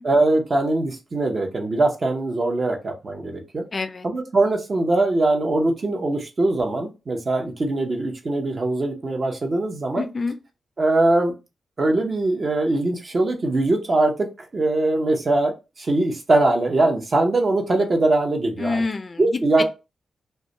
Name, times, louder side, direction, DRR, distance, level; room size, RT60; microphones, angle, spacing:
voice 1, 0.0-3.6 4.0-10.1 10.8-11.3 11.8-18.8 19.2-19.6, right 2 dB, 50° right, 0.7 m, -22 dB
voice 2, 3.7-4.1 10.0-10.4 18.6-19.6, left 3 dB, 45° left, 0.3 m, -27 dB
2.2 x 2.1 x 2.8 m
supercardioid pair, 40°, 0 cm